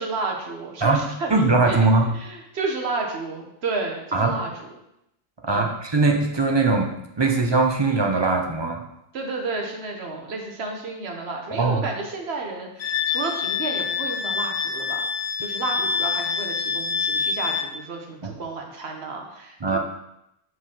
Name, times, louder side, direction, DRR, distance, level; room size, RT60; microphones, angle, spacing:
voice 1, 0.0-4.7 5.5-5.7 9.1-15.0 15.4-19.8, right 3 dB, 80° right, 2 dB, 1.3 m, -31 dB
voice 2, 1.3-2.1 4.1-4.4 5.4-8.9 11.5-11.8 18.2-18.3 19.6-19.8, right 3 dB, 30° right, 2 dB, 0.6 m, -21 dB
Wind instrument woodwind instrument, 12.8-17.7, left 5 dB, 80° left, 0.9 m, -26 dB
5.1 x 4.0 x 5.6 m, 0.82 s
omnidirectional pair, 1.1 m